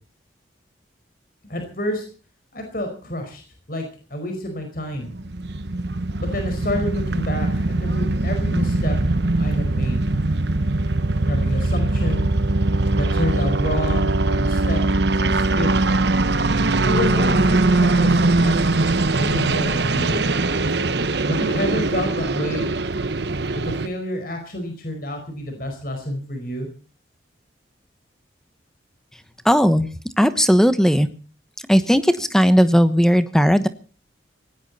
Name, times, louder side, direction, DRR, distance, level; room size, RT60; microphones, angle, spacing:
voice 1, 1.5-2.0 2.5-3.4 3.7-3.8 4.1-5.1 6.2-9.0 9.4-10.0 11.2-12.3 12.9-15.7 16.8-20.3 21.3-22.7 23.5-26.7, left 1 dB, 50° left, 5 dB, 4.9 m, -29 dB
sound 1, 5.1-23.9, right 2 dB, 65° right, 1.1 m, -21 dB
voice 2, 29.4-29.9 30.2-31.1 31.7-33.7, equal, 5° left, 11 dB, 1.0 m, -16 dB
18.5 x 16.0 x 4.2 m, 0.39 s
head